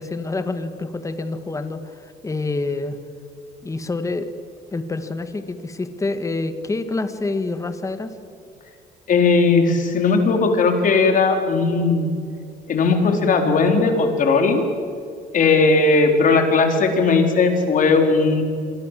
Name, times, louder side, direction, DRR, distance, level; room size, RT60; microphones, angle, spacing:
voice 1, 0.0-3.0 3.6-4.3 4.7-8.1, left 3 dB, 20° left, 9 dB, 1.8 m, -27 dB
voice 2, 9.1-12.1 12.7-14.6 15.3-18.4, left 4 dB, 50° left, 5 dB, 4.2 m, -17 dB
27.5 x 22.5 x 7.7 m, 2.4 s
cardioid pair, 110°, 17 cm